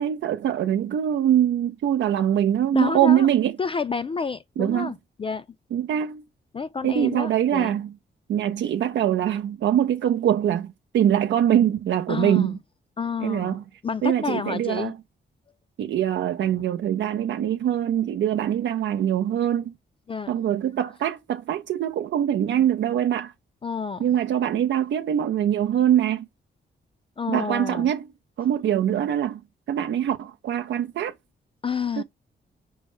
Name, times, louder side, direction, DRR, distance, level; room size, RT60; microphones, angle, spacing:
voice 1, 0.0-3.6 4.6-4.9 5.7-6.2 6.8-7.9 8.3-12.5 13.2-13.6 14.0-15.0 15.8-19.7 20.3-23.3 24.0-26.3 27.3-28.1 28.4-29.4 29.7-31.1 32.0-32.1, right 10 dB, 80° right, 0.5 m, -23 dB
voice 2, 2.7-3.3 3.6-5.5 6.5-7.7 12.1-12.6 13.0-14.9 20.1-20.3 23.6-24.2 27.2-27.9 31.6-32.0, left 5 dB, 30° left, 0.4 m, -29 dB
5.4 x 2.1 x 4.7 m
cardioid pair, 95°, 19 cm